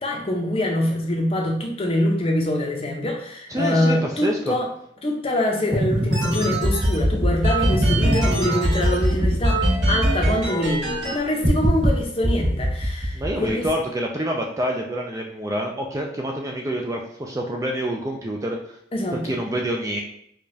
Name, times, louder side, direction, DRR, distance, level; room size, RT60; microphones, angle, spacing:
voice 1, 0.0-4.7 5.0-13.6 18.9-19.3, left 1 dB, 30° left, 1 dB, 0.6 m, -24 dB
voice 2, 3.5-4.6 13.1-18.8 19.2-20.0, right 1 dB, 15° right, 1 dB, 0.3 m, -27 dB
sound 1, 5.7-11.1 11.4-11.9 12.2-13.7, right 1 dB, 55° right, 1.2 m, -21 dB
4.8 x 2.3 x 2.7 m, 0.70 s
head